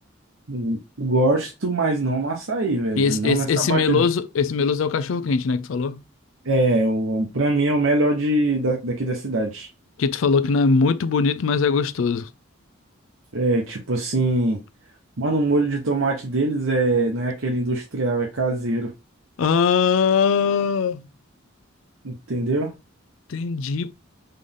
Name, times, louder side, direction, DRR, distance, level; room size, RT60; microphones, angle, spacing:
voice 1, 0.5-4.0 6.4-9.7 13.3-14.6 15.2-18.9 22.0-22.7, right 2 dB, 85° right, 1.0 m, -23 dB
voice 2, 3.0-6.0 10.0-12.3 19.4-21.1 23.3-23.9, left 5 dB, 70° left, 0.4 m, -21 dB
3.8 x 3.3 x 3.8 m
head